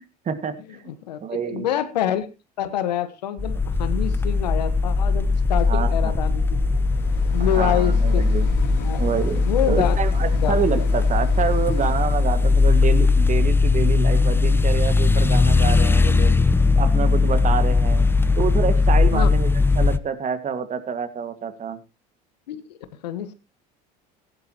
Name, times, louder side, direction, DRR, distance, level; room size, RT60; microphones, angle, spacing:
voice 1, 0.3-0.8 1.2-1.7 5.7-6.2 7.4-8.5 9.0-16.4 16.8-18.1 18.4-21.8, right 7 dB, 35° right, 11 dB, 2.0 m, -27 dB
voice 2, 0.9-2.2 2.6-6.6 7.3-8.3 8.8-9.0 9.4-10.0 10.4-10.6 19.1-19.3 22.5-22.8 23.0-23.3, left 11 dB, 90° left, 12 dB, 1.4 m, -26 dB
sound 1, 3.4-20.0, left 3 dB, 10° left, 0.8 m, -19 dB
sound 2, 5.6-16.8 17.4-17.5, left 6 dB, 75° left, 3.8 m, -39 dB
16.0 x 11.5 x 3.0 m, 0.27 s
hypercardioid pair, 85°, 21 cm